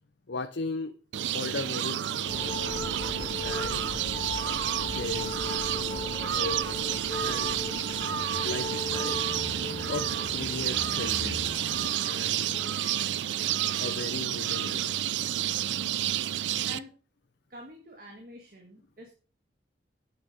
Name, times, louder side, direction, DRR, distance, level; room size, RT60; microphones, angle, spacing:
voice 1, 0.3-0.9 1.3-4.2 4.9-5.4 5.7-6.9 7.2-7.9 8.4-9.3 9.9-11.6 12.0-12.8 13.8-15.0, left 3 dB, 65° left, 8 dB, 0.6 m, -38 dB
sound 1, 1.1-16.8, right 11 dB, 75° right, 0.4 m, -30 dB
sound 2, 2.2-11.9, left 2 dB, 25° left, 0.4 m, -38 dB
voice 2, 17.5-19.1, equal, 50° right, 1 dB, 1.7 m, -46 dB
8.8 x 6.3 x 5.3 m, 0.38 s
head